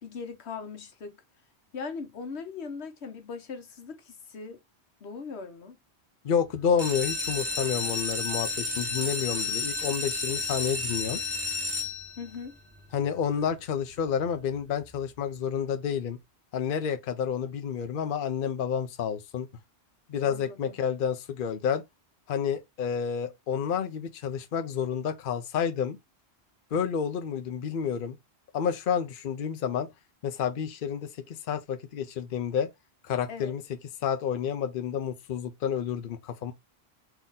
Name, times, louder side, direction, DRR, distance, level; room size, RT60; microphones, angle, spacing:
voice 1, 0.0-1.2 1.7-4.6 5.0-5.8 12.2-12.6 20.3-20.8 33.3-33.5, left 5 dB, 85° left, 1.2 m, -39 dB
voice 2, 6.2-11.2 12.9-16.2 16.5-19.5 20.1-21.8 22.3-26.0 26.7-28.2 28.5-29.9 30.2-32.7 33.0-33.6 34.0-36.5, left 7 dB, 60° left, 0.8 m, -29 dB
sound 1, 6.7-12.4 13.0-13.5 13.9-14.0 14.2-14.3 14.8-14.9, left 3 dB, 15° right, 0.9 m, -31 dB
4.0 x 2.9 x 3.6 m
omnidirectional pair, 1.1 m